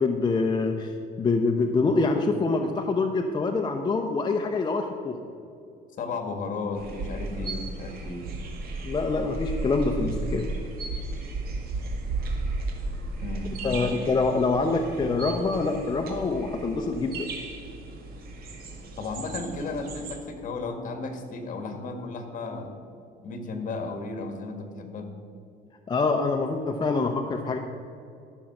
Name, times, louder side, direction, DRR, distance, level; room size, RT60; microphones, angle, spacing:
voice 1, 0.0-5.2 8.8-10.5 13.6-17.3 25.9-27.6, left 3 dB, 25° left, 3 dB, 0.7 m, -25 dB
voice 2, 6.0-8.3 13.2-14.0 19.0-22.8 23.2-25.1, left 3 dB, 50° left, 5 dB, 1.7 m, -34 dB
sound 1, 6.7-20.2, right 2 dB, 65° right, 1.9 m, -34 dB
14.5 x 6.4 x 6.0 m, 2.6 s
cardioid pair, 110°, 17 cm